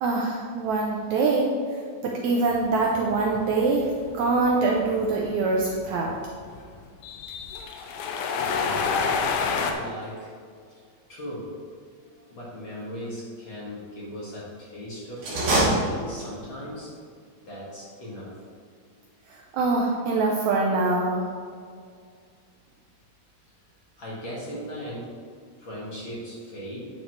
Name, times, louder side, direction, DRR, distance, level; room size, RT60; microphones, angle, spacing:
voice 1, 0.0-1.5 2.0-6.2 19.5-21.3, right 3 dB, 80° right, -1 dB, 1.7 m, -24 dB
sound 1, 2.5-9.7, left 5 dB, 80° left, 2.2 m, -29 dB
voice 2, 8.4-9.1 9.7-10.3 11.1-11.5 12.3-16.9 17.5-18.4 24.0-25.1 25.6-26.9, equal, 40° left, -7 dB, 2.2 m, -38 dB
sound 2, 15.2-16.6, right 1 dB, 50° right, 3.2 m, -24 dB
9.5 x 7.2 x 3.3 m, 2.1 s
omnidirectional pair, 3.9 m